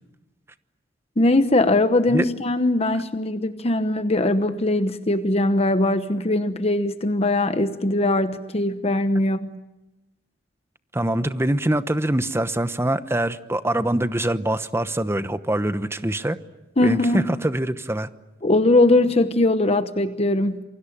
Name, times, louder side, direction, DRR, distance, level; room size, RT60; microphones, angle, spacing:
voice 1, 1.2-9.5 16.8-17.3 18.4-20.6, left 2 dB, 35° left, 10 dB, 1.0 m, -20 dB
voice 2, 10.9-16.4 16.8-18.1, right 1 dB, 15° right, 12 dB, 1.0 m, -24 dB
28.5 x 24.0 x 8.7 m, 0.97 s
head